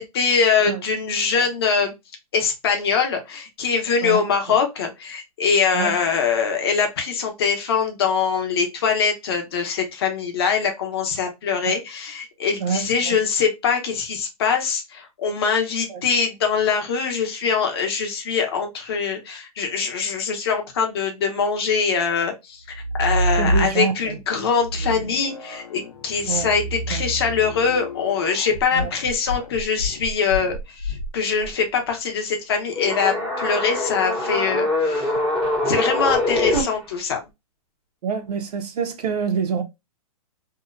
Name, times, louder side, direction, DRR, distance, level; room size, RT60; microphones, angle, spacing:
voice 1, 0.0-1.9 2.3-35.1 35.7-37.2, left 6 dB, 40° left, 0.7 m, -23 dB
voice 2, 12.6-13.2 15.9-16.0 23.4-24.2 26.3-26.5 26.9-27.0 28.7-28.9 38.0-39.6, right 6 dB, 85° right, 0.6 m, -26 dB
sound 1, 22.7-24.1 24.6-31.5, right 1 dB, 85° left, 0.7 m, -28 dB
sound 2, 32.7-36.6, left 1 dB, ahead, 0.5 m, -23 dB
2.7 x 2.0 x 2.3 m
hypercardioid pair, 175°, 20 cm